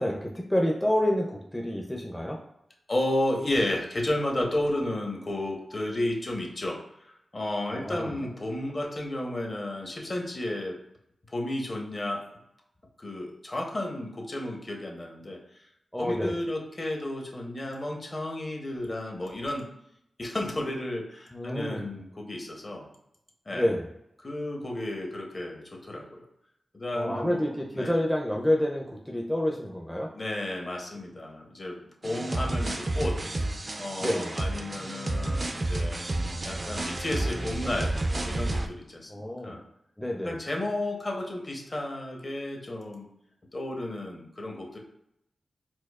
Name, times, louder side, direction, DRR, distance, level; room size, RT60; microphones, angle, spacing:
voice 1, 0.0-2.4 7.7-8.1 15.9-16.3 21.3-21.8 23.5-23.9 26.9-30.1 32.1-32.6 34.0-34.3 39.1-39.6 40.0-40.4, left 1 dB, 10° left, 0 dB, 0.5 m, -28 dB
voice 2, 2.9-10.8 11.3-12.2 13.0-15.4 16.0-19.7 20.2-22.9 23.5-23.7 24.2-26.2 26.7-27.9 30.1-31.8 32.0-33.2 33.8-36.0 36.4-39.6 40.2-43.1 43.5-44.8, left 1 dB, 40° left, 0 dB, 0.9 m, -32 dB
sound 1, 32.0-38.7, right 2 dB, 40° right, 0.4 m, -30 dB
4.3 x 2.3 x 2.4 m, 0.80 s
cardioid pair, 50°, 0 cm